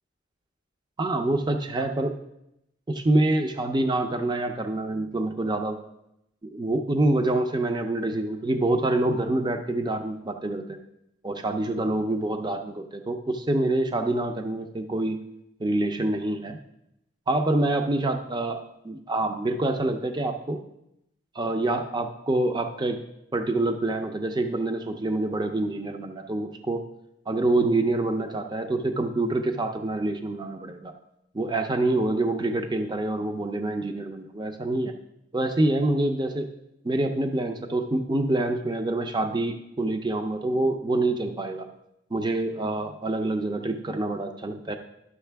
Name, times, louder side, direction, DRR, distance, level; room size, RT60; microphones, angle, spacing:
voice 1, 1.0-2.2 2.9-5.8 6.4-10.8 11.2-15.2 15.6-16.6 17.3-18.6 18.8-20.6 21.3-23.0 23.3-26.8 27.3-30.9 31.3-34.9 35.3-36.5 36.8-41.7 42.1-44.8, right 2 dB, 20° right, 6 dB, 0.5 m, -26 dB
11.0 x 6.5 x 3.4 m, 0.81 s
head